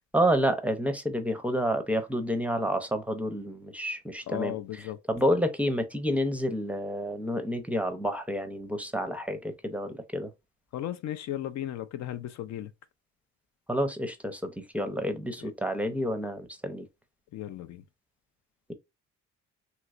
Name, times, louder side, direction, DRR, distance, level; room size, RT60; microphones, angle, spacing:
voice 1, 0.1-10.3 13.7-16.8, equal, 5° right, 0.5 m, -29 dB
voice 2, 4.3-5.0 10.7-12.7 15.4-15.5 17.3-17.8, left 12 dB, 65° left, 0.4 m, -35 dB
3.1 x 2.9 x 2.4 m
cardioid pair, 90°, 30 cm